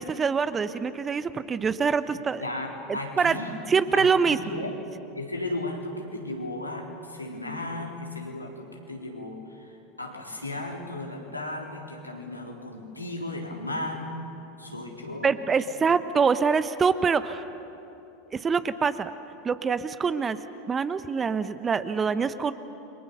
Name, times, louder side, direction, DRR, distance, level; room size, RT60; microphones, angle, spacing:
voice 1, 0.0-2.4 2.9-3.4 3.7-4.6 15.2-17.5 18.3-19.1 19.4-20.4 20.7-22.5, right 5 dB, 20° right, 13 dB, 1.0 m, -25 dB
voice 2, 2.1-3.6 3.9-4.7 5.1-14.2 14.6-15.4, left 2 dB, 85° left, -1 dB, 3.9 m, -35 dB
30.0 x 24.0 x 6.9 m, 2.9 s
figure-of-eight pair, 85°, 0 cm